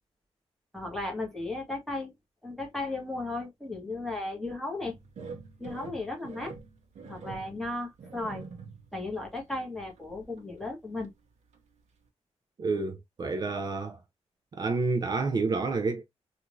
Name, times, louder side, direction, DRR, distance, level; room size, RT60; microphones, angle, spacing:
voice 1, 0.7-2.1 2.4-4.9 5.6-6.5 7.0-8.4 8.9-11.1, left 2 dB, 5° left, 1.3 m, -35 dB
sound 1, 4.9-9.0 9.4-9.5 10.0-10.7 11.0-11.1 11.5-11.6, right 5 dB, 80° right, 0.8 m, -45 dB
voice 2, 12.6-14.0 14.5-16.0, right 3 dB, 35° right, 0.4 m, -29 dB
3.6 x 2.4 x 3.0 m
wide cardioid pair, 175°, 12 cm